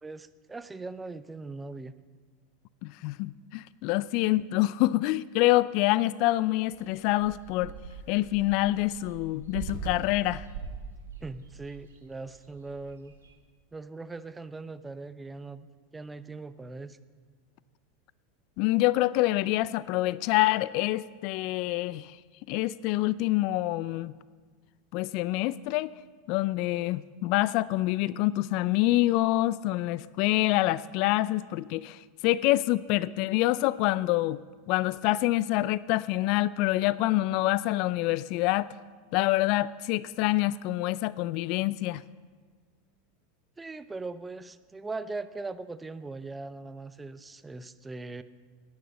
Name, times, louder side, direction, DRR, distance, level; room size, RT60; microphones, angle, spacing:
voice 1, 0.0-1.9 11.2-13.2 13.7-15.7 15.9-17.0 43.6-48.2, right 3 dB, 15° right, 13 dB, 0.6 m, -40 dB
voice 2, 2.8-7.7 8.1-10.5 18.6-22.2 22.5-24.1 24.9-25.9 26.3-34.4 34.7-38.7 39.1-42.0, left 17 dB, 55° left, 19 dB, 0.3 m, -26 dB
sound 1, 6.6-13.4, right 5 dB, 85° right, 1.7 m, -43 dB
10.5 x 9.5 x 7.5 m, 1.5 s
hypercardioid pair, 90°, 0 cm